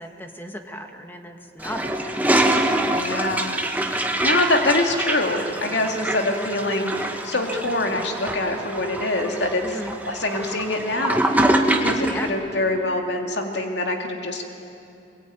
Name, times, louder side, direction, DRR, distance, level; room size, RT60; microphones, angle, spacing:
voice 1, 0.0-2.2 9.6-10.0 12.0-12.3, equal, 10° left, 4 dB, 1.7 m, -36 dB
Toilet flush, 1.6-12.3, right 1 dB, 10° right, 1.3 m, -25 dB
voice 2, 2.9-3.5 3.9-9.8 10.0-11.5 11.8-14.5, left 2 dB, 70° left, 2 dB, 2.4 m, -25 dB
23.0 x 22.5 x 9.2 m, 2.7 s
head